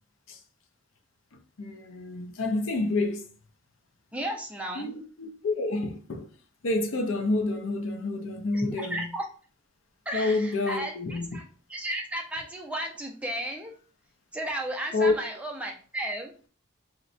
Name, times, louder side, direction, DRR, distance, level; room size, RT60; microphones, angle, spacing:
voice 1, 1.6-3.2 4.8-6.3 6.6-9.1 10.1-11.4 14.9-15.1, left 2 dB, 80° left, 0.5 m, -28 dB
voice 2, 4.1-4.9 8.5-9.3 10.1-11.4 11.7-13.7 14.3-16.3, right 1 dB, 5° right, 0.4 m, -34 dB
3.8 x 2.1 x 2.5 m
head